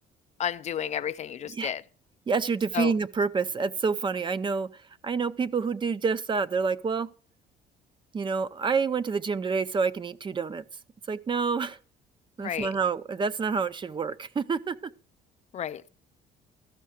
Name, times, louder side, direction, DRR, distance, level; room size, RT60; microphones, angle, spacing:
voice 1, 0.4-1.8 2.7-2.9 12.4-12.7 15.5-15.9, left 9 dB, 45° left, 0.4 m, -32 dB
voice 2, 2.3-4.7 5.0-7.1 8.1-10.6 11.1-11.8 12.4-14.9, right 5 dB, 30° right, 0.5 m, -28 dB
13.5 x 5.6 x 6.5 m
cardioid pair, 110°, 17 cm